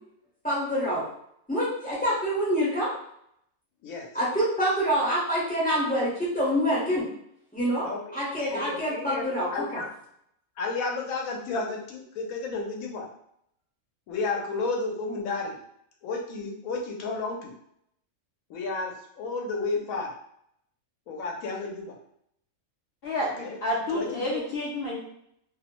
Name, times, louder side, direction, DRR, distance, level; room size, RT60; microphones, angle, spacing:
voice 1, 0.4-1.1 1.5-2.9 4.1-7.1 7.5-9.8, equal, 10° left, -10 dB, 0.6 m, -26 dB
voice 2, 8.5-9.9 10.6-13.1 14.1-15.6 16.0-17.5 18.5-20.1 21.1-22.0 23.2-23.6 23.9-24.5, left 3 dB, 75° left, 0 dB, 1.0 m, -32 dB
voice 3, 23.0-25.0, left 1 dB, 55° left, -3 dB, 0.7 m, -29 dB
2.6 x 2.0 x 2.8 m, 0.72 s
omnidirectional pair, 1.5 m